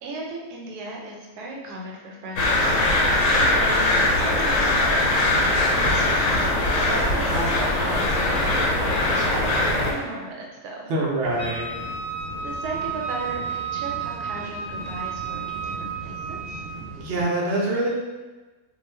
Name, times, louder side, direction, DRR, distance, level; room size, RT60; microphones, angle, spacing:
voice 1, 0.0-2.9 3.3-10.9 12.4-16.6, right 2 dB, 80° right, -1 dB, 1.1 m, -36 dB
sound 1, 2.4-9.9, left 2 dB, 65° left, 0.8 m, -21 dB
voice 2, 10.9-11.7 17.0-17.9, right 1 dB, 65° right, -3 dB, 0.6 m, -24 dB
sound 2, 11.2-17.2, right 2 dB, 40° right, 0.9 m, -39 dB
Wind instrument woodwind instrument, 11.4-16.7, right 6 dB, 35° left, 0.5 m, -32 dB
2.4 x 2.3 x 3.2 m, 1.2 s
omnidirectional pair, 1.7 m